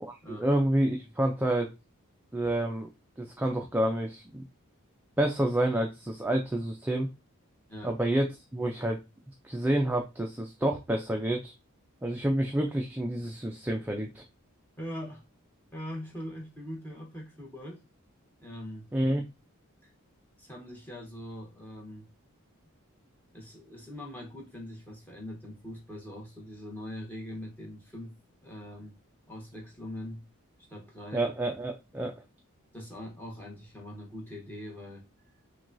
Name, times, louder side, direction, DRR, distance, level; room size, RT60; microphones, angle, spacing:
voice 1, 0.0-1.7 2.3-2.9 3.2-4.4 5.2-7.1 7.8-9.0 9.4-11.5 12.0-14.2 18.9-19.2 31.1-32.1, right 1 dB, 10° right, 0.4 m, -28 dB
voice 2, 14.8-15.2 15.7-17.8 18.4-18.9 19.8-19.9 20.4-22.1 23.3-29.0 29.3-30.2 30.7-31.2 32.7-35.1, left 1 dB, 10° left, 1.1 m, -42 dB
6.0 x 2.3 x 2.5 m
head